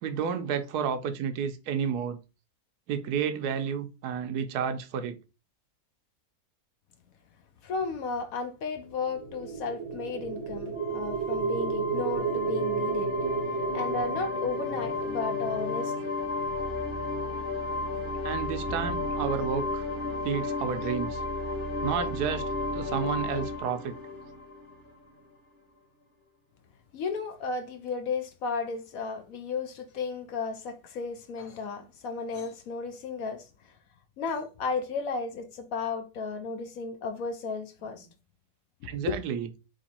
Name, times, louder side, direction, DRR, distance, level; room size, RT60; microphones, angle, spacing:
voice 1, 0.0-2.2 2.9-5.2 18.2-19.8 20.2-21.2 21.8-22.4 22.7-24.0 38.8-39.5, right 7 dB, 75° right, 1.1 m, -31 dB
voice 2, 7.6-13.1 13.7-15.9 26.9-33.5 34.2-38.1 39.1-39.2, left 4 dB, 65° left, 1.0 m, -34 dB
sound 1, 9.0-17.1, right 5 dB, 55° right, 1.0 m, -33 dB
sound 2, 10.8-25.2, left 3 dB, 35° left, 1.4 m, -33 dB
3.8 x 3.2 x 4.1 m
omnidirectional pair, 1.7 m